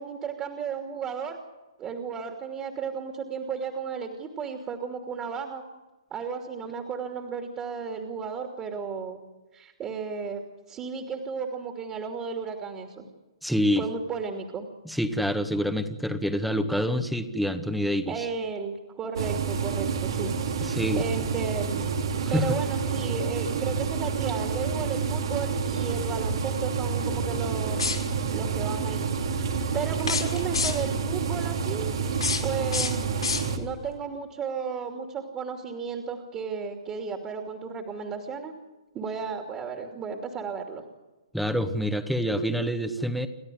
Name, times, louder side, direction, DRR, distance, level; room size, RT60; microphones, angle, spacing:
voice 1, 0.0-1.4 1.8-5.6 6.1-9.2 9.5-10.4 10.7-13.0 13.7-14.7 18.1-21.9 22.3-27.8 28.3-31.9 32.4-33.0 33.6-38.5 38.9-40.8, right 6 dB, 20° right, 3 dB, 2.8 m, -34 dB
voice 2, 13.4-13.8 14.9-18.3 20.6-21.1 22.2-22.5 41.3-43.3, equal, ahead, 9 dB, 1.7 m, -27 dB
sound 1, 19.2-33.6, right 5 dB, 65° right, 3.2 m, -29 dB
sound 2, 27.7-28.4 30.0-31.0 32.0-33.8, left 5 dB, 85° left, 6.3 m, -31 dB
29.5 x 13.0 x 9.4 m, 1.2 s
hypercardioid pair, 130°, 3 cm